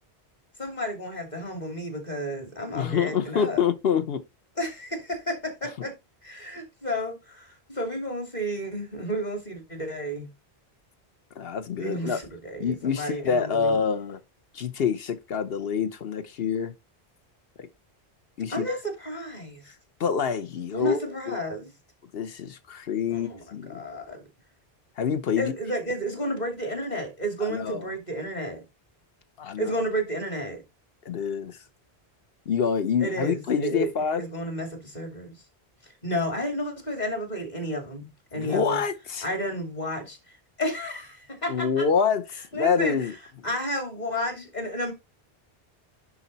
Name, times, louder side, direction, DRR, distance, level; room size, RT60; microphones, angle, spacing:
voice 1, 0.6-3.6 4.6-5.9 6.2-10.3 11.8-13.8 18.5-19.7 20.7-21.7 23.1-23.4 23.7-24.2 25.4-28.6 29.6-30.6 33.0-33.9 34.1-35.3 35.8-38.8 39.2-41.9 42.5-43.0 43.4-44.9, equal, 40° left, 2.6 m, -32 dB
voice 2, 2.7-4.2 11.4-12.2 12.6-14.2 14.5-16.7 18.4-18.8 20.0-21.4 22.1-23.8 25.0-25.5 27.4-27.8 29.4-29.7 31.0-31.6 32.5-34.2 38.3-39.2 41.5-43.1, left 6 dB, 65° left, 1.0 m, -26 dB
10.0 x 4.2 x 4.0 m
omnidirectional pair, 1.1 m